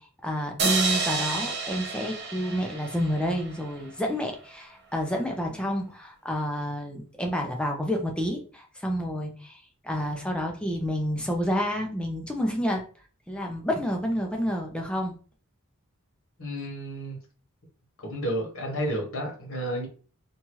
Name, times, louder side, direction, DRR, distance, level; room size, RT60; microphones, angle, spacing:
voice 1, 0.0-12.8 13.3-15.2, equal, 5° left, 0.4 m, -29 dB
sound 1, 0.6-3.9, right 4 dB, 50° right, 0.7 m, -30 dB
voice 2, 16.4-17.2 18.0-19.9, equal, 70° left, 1.2 m, -31 dB
2.9 x 2.4 x 3.0 m
head